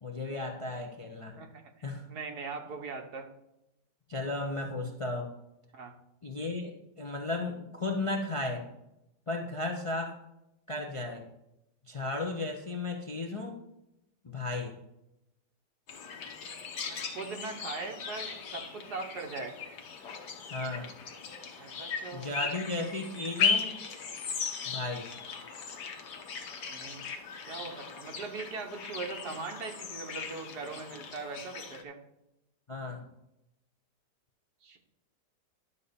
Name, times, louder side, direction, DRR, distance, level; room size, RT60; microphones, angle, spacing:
voice 1, 0.0-1.4 1.8-2.1 4.1-5.3 6.2-8.6 9.3-10.2 10.7-11.2 11.9-13.6 14.2-14.7 20.5-20.9 22.1-23.7 24.7-25.1 32.7-33.0, left 2 dB, 30° left, 2 dB, 0.5 m, -35 dB
voice 2, 2.1-3.3 5.7-5.9 16.9-19.5 21.6-22.5 26.7-27.0 27.4-32.0 34.6-34.8, right 4 dB, 70° right, 3 dB, 1.7 m, -40 dB
sound 1, 15.9-31.8, left 6 dB, 70° left, 1.6 m, -37 dB
11.0 x 4.1 x 6.9 m, 0.88 s
omnidirectional pair, 1.8 m